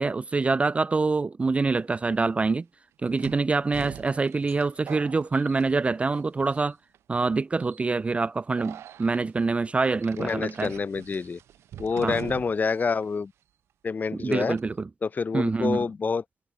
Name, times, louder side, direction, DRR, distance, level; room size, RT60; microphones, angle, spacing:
voice 1, 0.0-2.6 3.0-6.8 7.1-10.7 12.0-12.2 14.1-14.9 15.3-15.9, right 3 dB, 25° right, 0.3 m, -25 dB
sound 1, 1.8-1.9 3.2-6.2 6.5-7.0 7.6-7.8 8.6-9.2 10.0-12.8 13.0-13.1 14.3-14.6, right 11 dB, 60° right, 1.0 m, -43 dB
voice 2, 10.2-11.4 11.8-13.3 13.8-14.6 15.0-16.2, left 5 dB, 35° left, 0.8 m, -27 dB
hypercardioid pair, 45°, 5 cm